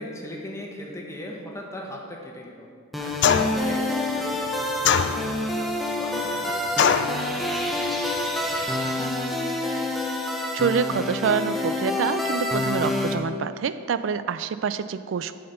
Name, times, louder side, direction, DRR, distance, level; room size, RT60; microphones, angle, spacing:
voice 1, 0.0-2.7 3.0-9.1, left 1 dB, 15° left, -1 dB, 1.1 m, -40 dB
sound 1, 2.9-13.1, left 1 dB, ahead, 0.7 m, -27 dB
bullet hits the car, 3.2-3.7 4.8-5.5 6.8-7.2, left 7 dB, 60° left, 0.4 m, -21 dB
voice 2, 10.5-15.4, right 6 dB, 70° right, 13 dB, 0.4 m, -26 dB
11.0 x 4.4 x 5.5 m, 2.2 s
head